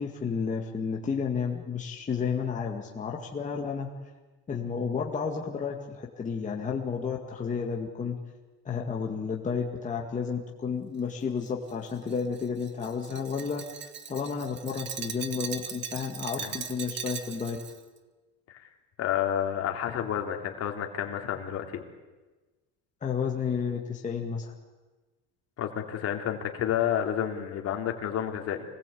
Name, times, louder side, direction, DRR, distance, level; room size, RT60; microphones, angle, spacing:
voice 1, 0.0-3.9 4.5-8.2 8.6-13.6 14.1-17.6 23.0-24.5, left 6 dB, 20° left, 0 dB, 2.1 m, -31 dB
Glass, 11.4-17.8, right 7 dB, 35° right, 1.5 m, -39 dB
voice 2, 19.0-21.8 25.6-28.6, left 10 dB, 45° left, 3 dB, 3.1 m, -30 dB
25.5 x 19.5 x 8.6 m, 1.2 s
cardioid pair, 145°, 33 cm